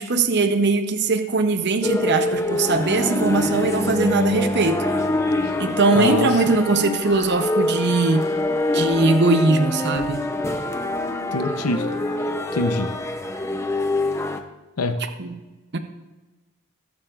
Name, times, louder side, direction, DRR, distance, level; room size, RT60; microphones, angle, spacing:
voice 1, 0.0-4.8 5.6-8.3 8.7-10.2 15.2-15.3 15.7-15.8, right 3 dB, 50° right, 7 dB, 0.7 m, -20 dB
sound 1, 1.8-14.4, left 2 dB, 15° left, 0.6 m, -25 dB
voice 2, 5.9-6.4 11.3-11.9 12.5-12.9 14.8-15.1, left 2 dB, 90° left, 7 dB, 0.7 m, -24 dB
20.5 x 7.3 x 2.5 m, 1.2 s
head